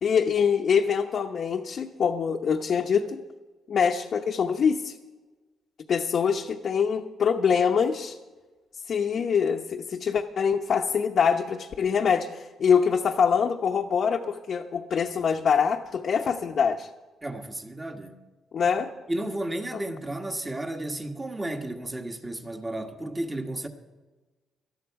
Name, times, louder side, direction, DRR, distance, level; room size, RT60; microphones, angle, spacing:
voice 1, 0.0-3.2 3.7-4.9 5.9-8.2 8.9-16.9 18.5-18.9 19.7-19.8, left 6 dB, 55° left, 0.9 m, -24 dB
voice 2, 17.2-18.2 19.1-23.7, right 1 dB, 20° right, 1.5 m, -33 dB
18.5 x 13.0 x 4.7 m
cardioid pair, 90°, 0 cm